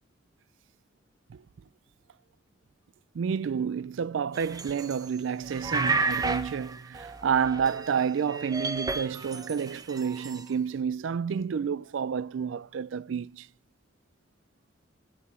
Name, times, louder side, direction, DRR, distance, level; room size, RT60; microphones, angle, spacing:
voice 1, 3.1-13.5, right 7 dB, 70° right, 0.4 m, -30 dB
sound 1, 4.3-5.1 5.4-8.0 8.3-10.4, right 3 dB, 20° right, 0.7 m, -32 dB
13.5 x 4.8 x 5.5 m
head